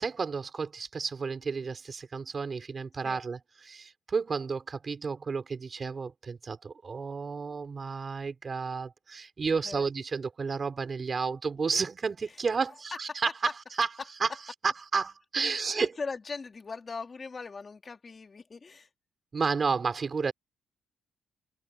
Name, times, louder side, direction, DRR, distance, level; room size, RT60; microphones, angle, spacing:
voice 1, 0.0-13.3 13.8-13.9 14.2-14.3 14.6-15.9 19.3-20.3, right 5 dB, 40° right, 4.3 m, -31 dB
voice 2, 12.3-12.7 13.1-13.2 15.4-18.9, left 4 dB, 35° left, 2.3 m, -40 dB
cardioid pair, 90°, 0 cm